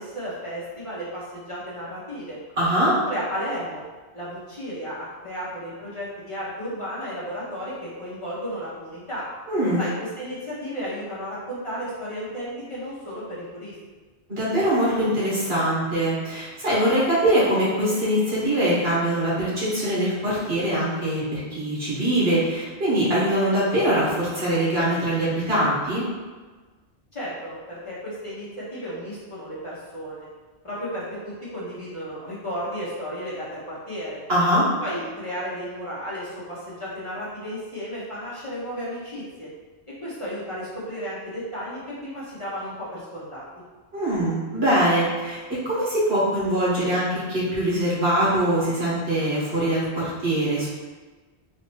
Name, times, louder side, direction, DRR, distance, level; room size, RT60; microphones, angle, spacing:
voice 1, 0.0-2.4 3.0-3.8 4.1-9.3 9.8-13.7 27.1-30.3 30.6-34.2 34.8-39.5 40.0-43.5, equal, 30° left, -9 dB, 0.9 m, -33 dB
voice 2, 2.6-2.9 9.5-9.8 14.3-26.0 34.3-34.7 43.9-50.7, right 1 dB, 65° right, -8 dB, 1.7 m, -23 dB
4.1 x 2.9 x 3.0 m, 1.3 s
omnidirectional pair, 1.1 m